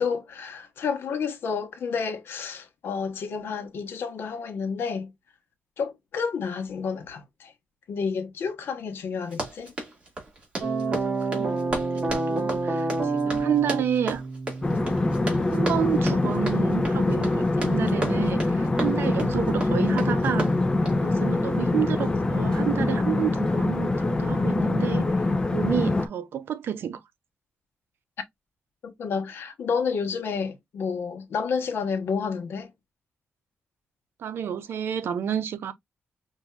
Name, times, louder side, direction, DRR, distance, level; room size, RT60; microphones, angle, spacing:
voice 1, 0.0-5.1 5.8-7.5 7.9-9.7 28.8-32.7, left 5 dB, 75° left, 1.1 m, -30 dB
Run, 9.2-21.1, right 2 dB, 30° right, 2.0 m, -35 dB
sound 1, 10.6-15.6, right 3 dB, 45° right, 1.9 m, -28 dB
voice 2, 10.8-11.6 11.9-14.2 15.5-20.5 21.0-25.1 25.5-27.0 34.2-35.7, right 9 dB, 75° right, 0.6 m, -30 dB
sound 2, 14.6-26.1, left 2 dB, 20° left, 0.6 m, -24 dB
5.5 x 2.6 x 2.4 m
wide cardioid pair, 125°, 4 cm